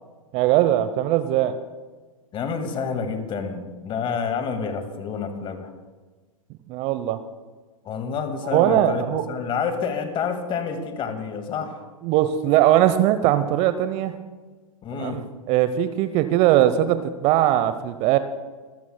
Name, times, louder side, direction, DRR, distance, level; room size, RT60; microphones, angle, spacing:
voice 1, 0.3-1.6 6.7-7.2 8.4-9.2 12.0-14.2 14.9-18.2, right 12 dB, 35° right, 11 dB, 0.8 m, -20 dB
voice 2, 2.3-5.7 7.9-11.8 14.8-15.2, left 6 dB, 30° left, 7 dB, 2.0 m, -28 dB
25.5 x 14.5 x 2.3 m, 1.3 s
figure-of-eight pair, 105°, 18 cm